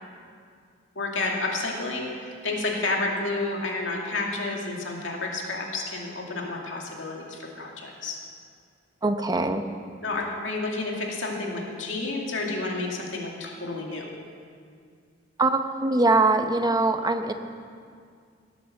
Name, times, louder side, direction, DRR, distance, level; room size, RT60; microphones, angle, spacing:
voice 1, 1.0-8.2 10.0-14.1, left 2 dB, 75° left, -1 dB, 2.3 m, -30 dB
voice 2, 9.0-9.6 15.4-17.3, right 2 dB, 20° right, 7 dB, 0.8 m, -22 dB
17.5 x 8.6 x 7.2 m, 2.2 s
head